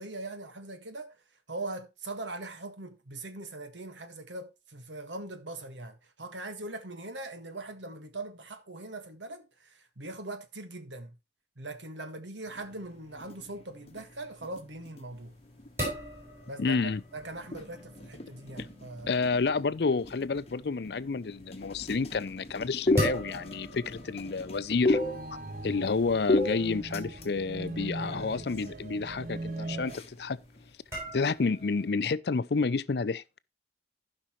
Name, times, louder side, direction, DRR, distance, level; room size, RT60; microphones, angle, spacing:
voice 1, 0.0-11.1 11.6-15.3 16.5-16.8 17.1-19.2, right 2 dB, 80° right, 1.7 m, -41 dB
sound 1, 12.5-30.7, left 2 dB, 35° left, 1.0 m, -36 dB
sound 2, 15.1-31.9, equal, 15° right, 6.9 m, -42 dB
voice 2, 16.6-17.0 19.1-25.0 25.6-30.4 31.1-33.2, left 4 dB, 60° left, 0.5 m, -30 dB
sound 3, 24.9-30.0, right 2 dB, 45° right, 0.7 m, -40 dB
15.5 x 5.5 x 3.1 m
head